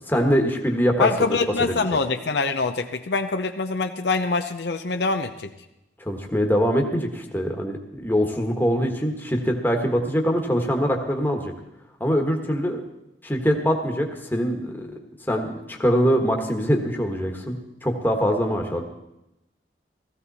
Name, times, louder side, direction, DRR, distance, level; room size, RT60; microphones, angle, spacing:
voice 1, 0.1-1.8 6.0-11.5 12.0-12.8 13.2-15.0 15.3-17.6 17.8-18.8, equal, 10° left, 3 dB, 1.4 m, -23 dB
voice 2, 1.0-5.5, left 4 dB, 70° left, 7 dB, 0.7 m, -24 dB
16.5 x 14.5 x 4.2 m, 0.91 s
head